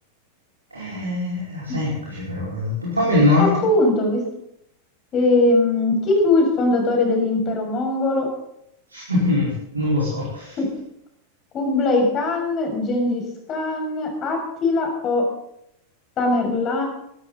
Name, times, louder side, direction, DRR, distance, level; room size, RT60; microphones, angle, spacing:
voice 1, 0.7-3.5 8.9-10.6, left 2 dB, 80° right, -5 dB, 5.4 m, -22 dB
voice 2, 3.4-4.2 5.1-8.3 10.6-10.7 11.5-13.2 13.5-15.2 16.2-16.9, left 2 dB, 30° left, 2 dB, 6.9 m, -20 dB
22.0 x 13.0 x 4.1 m, 0.76 s
figure-of-eight pair, 90°, 0 cm